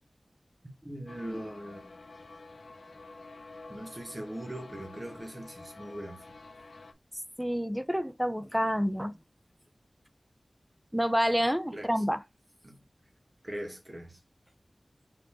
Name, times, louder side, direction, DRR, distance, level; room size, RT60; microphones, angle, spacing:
voice 1, 0.8-1.9 3.7-6.4 11.7-11.9 12.6-12.8 13.4-14.2, right 1 dB, 30° right, 1.4 m, -40 dB
sound 1, 1.1-6.9, left 3 dB, 85° left, 0.5 m, -49 dB
voice 2, 7.4-9.2 10.9-12.2, equal, 5° right, 0.6 m, -28 dB
5.0 x 3.0 x 3.5 m
wide cardioid pair, 55°, 0 cm